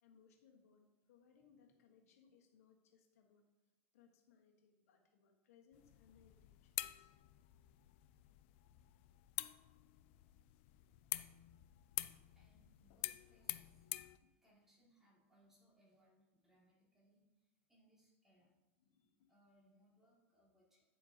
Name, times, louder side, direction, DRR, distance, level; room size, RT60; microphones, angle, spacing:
voice 1, 0.0-3.5 3.9-7.1 14.2-14.3 18.8-19.3, left 6 dB, 85° left, 2 dB, 1.4 m, -69 dB
sound 1, 5.7-14.2, left 17 dB, 55° left, 0.3 m, -47 dB
voice 2, 12.3-13.9 14.3-17.2 17.7-18.5 19.3-20.8, equal, 5° right, -5 dB, 2.4 m, -72 dB
9.5 x 7.2 x 2.9 m, 1.0 s
supercardioid pair, 150°, 8 cm